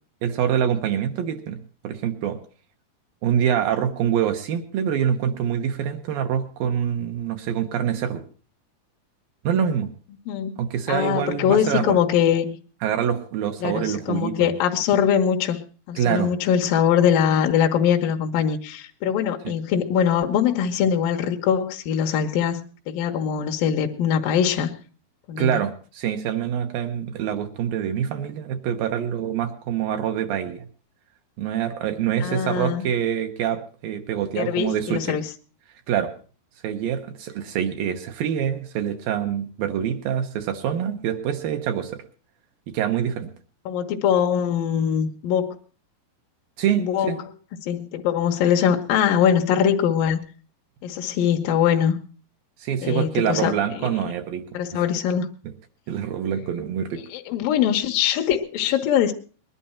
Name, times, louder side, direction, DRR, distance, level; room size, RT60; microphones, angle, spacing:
voice 1, 0.2-1.6 1.8-2.4 3.2-8.2 9.4-9.9 10.6-12.0 12.8-14.5 16.0-16.3 25.4-30.7 31.4-35.2 35.9-36.1 36.6-42.0 42.7-43.3 46.6-47.2 52.6-54.4 54.7-54.9 55.9-57.0, right 9 dB, 75° right, 6 dB, 2.6 m, -25 dB
voice 2, 10.3-10.6 10.9-12.6 13.6-15.6 15.9-24.7 25.3-25.6 32.2-32.9 34.4-35.3 43.7-45.6 46.8-47.1 47.6-50.2 50.8-52.0 52.8-54.1 54.5-55.3 57.1-59.1, left 8 dB, 75° left, 4 dB, 2.4 m, -22 dB
20.5 x 11.0 x 4.3 m, 0.38 s
omnidirectional pair, 4.5 m